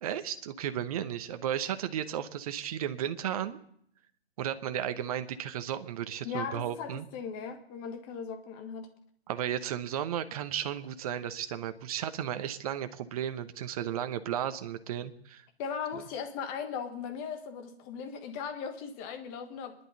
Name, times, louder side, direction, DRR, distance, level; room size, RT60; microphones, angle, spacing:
voice 1, 0.0-3.6 4.4-7.0 9.3-15.4, right 10 dB, 35° right, 10 dB, 1.0 m, -34 dB
voice 2, 6.2-8.9 15.6-19.7, left 6 dB, 25° left, 7 dB, 1.5 m, -38 dB
25.5 x 11.0 x 4.1 m, 0.68 s
hypercardioid pair, 140°, 32 cm